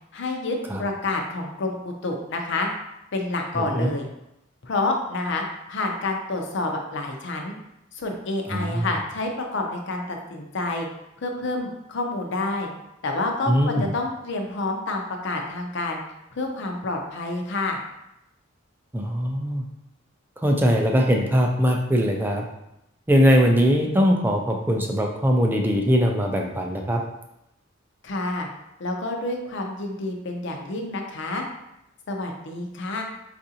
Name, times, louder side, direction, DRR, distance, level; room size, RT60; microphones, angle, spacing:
voice 1, 0.1-2.7 3.1-4.1 4.6-7.5 7.9-10.9 11.2-12.7 13.0-16.0 16.3-17.8 28.0-28.5 28.8-31.4 32.1-33.0, left 2 dB, 60° left, 2 dB, 0.6 m, -28 dB
voice 2, 3.5-3.9 8.5-8.9 13.5-13.9 18.9-19.6 20.4-22.4 23.1-27.0, equal, 10° right, 1 dB, 0.4 m, -21 dB
4.6 x 2.5 x 2.7 m, 0.85 s
head